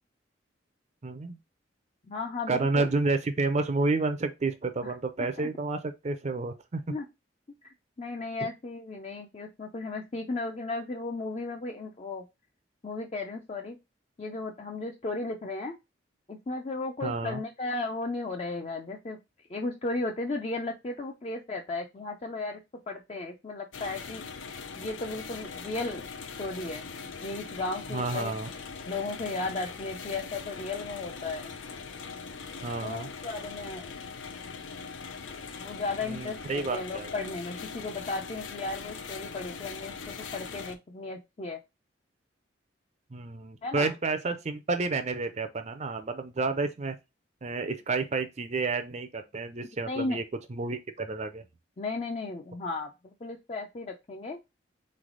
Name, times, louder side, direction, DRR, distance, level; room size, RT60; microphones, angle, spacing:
voice 1, 1.0-1.4 2.5-6.9 17.0-17.4 27.9-28.5 32.6-33.1 36.0-37.1 43.1-47.0 47.4-50.2 50.5-51.4, right 3 dB, 35° right, 0.5 m, -30 dB
voice 2, 2.1-2.9 4.8-4.9 5.4-5.5 6.9-7.0 7.6-12.3 12.8-13.8 14.2-15.7 16.3-22.6 22.9-26.1 26.4-26.8 27.2-28.3 28.9-31.5 32.8-33.9 35.6-41.6 43.6-43.9 49.9-50.2 51.8-54.4, left 3 dB, 35° left, 0.5 m, -35 dB
sound 1, 23.7-40.8, left 5 dB, 85° left, 0.6 m, -41 dB
3.9 x 3.3 x 3.8 m
head